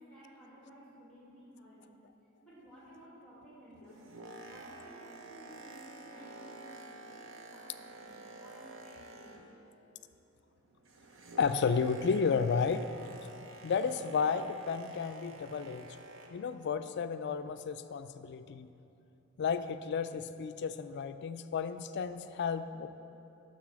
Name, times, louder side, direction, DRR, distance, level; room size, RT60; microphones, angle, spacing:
voice 1, 0.0-1.8 2.4-4.1 4.3-9.3, equal, 5° left, -8 dB, 2.1 m, -55 dB
Boat Water vehicle, 3.7-9.8 10.1-16.5 17.2-17.3, right 2 dB, 70° right, 0.8 m, -50 dB
voice 2, 11.4-12.9 13.6-15.9 16.3-18.7 19.4-22.9, left 5 dB, 55° left, 11 dB, 0.4 m, -32 dB
12.0 x 4.0 x 6.2 m, 2.8 s
head